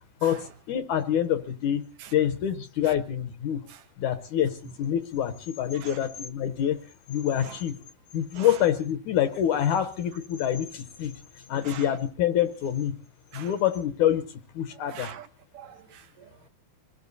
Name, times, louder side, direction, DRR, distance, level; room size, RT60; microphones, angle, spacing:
voice 1, 0.2-1.8 2.1-3.6 4.0-6.8 7.1-7.8 8.1-11.1 11.5-12.9 13.3-14.2 14.5-15.1, left 10 dB, 70° left, 2.1 m, -26 dB
voice 2, 14.7-15.3 15.5-16.5, right 10 dB, 75° right, 2.5 m, -44 dB
26.0 x 20.5 x 2.7 m
omnidirectional pair, 4.1 m